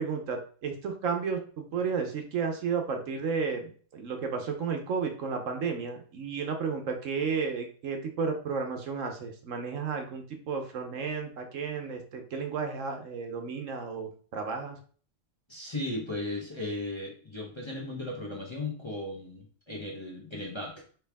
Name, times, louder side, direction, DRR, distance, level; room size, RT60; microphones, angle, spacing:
voice 1, 0.0-14.8, right 5 dB, 70° right, 4 dB, 1.2 m, -33 dB
voice 2, 15.5-20.8, left 2 dB, 25° left, -3 dB, 0.8 m, -36 dB
4.5 x 3.3 x 3.4 m, 0.43 s
omnidirectional pair, 1.4 m